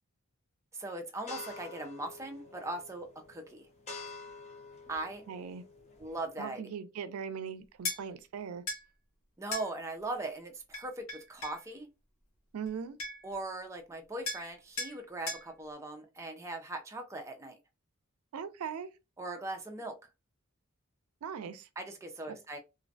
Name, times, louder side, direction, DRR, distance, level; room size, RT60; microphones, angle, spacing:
voice 1, 0.7-3.7 4.9-5.2 6.0-6.7 9.4-11.9 13.2-17.6 19.2-20.0 21.8-22.6, right 2 dB, 15° right, 0.3 m, -40 dB
sound 1, 1.3-6.3, left 3 dB, 30° left, 0.6 m, -48 dB
voice 2, 5.3-5.6 6.4-8.6 12.5-13.0 18.3-18.9 21.2-21.7 22.3-22.4, right 7 dB, 90° right, 0.4 m, -39 dB
sound 2, 7.8-8.0 8.7-8.8 9.5-9.7 10.7-11.6 12.7-12.8 13.0-13.3 14.3-14.5 14.8-15.0 15.3-15.5, left 3 dB, 70° left, 1.0 m, -37 dB
2.5 x 2.0 x 2.6 m
head